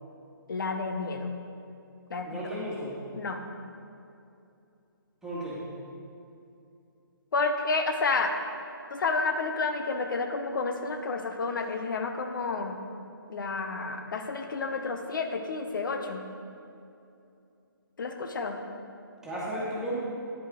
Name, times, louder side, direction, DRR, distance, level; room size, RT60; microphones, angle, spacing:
voice 1, 0.5-1.3 2.1-2.4 3.2-3.4 7.3-8.4 8.9-12.8 13.3-16.2 18.0-18.6, left 3 dB, 60° left, 5 dB, 0.8 m, -30 dB
voice 2, 2.2-3.0 5.2-5.6 19.2-20.0, right 1 dB, 5° right, -8 dB, 1.9 m, -34 dB
9.8 x 8.0 x 3.7 m, 2.7 s
figure-of-eight pair, 140°, 12 cm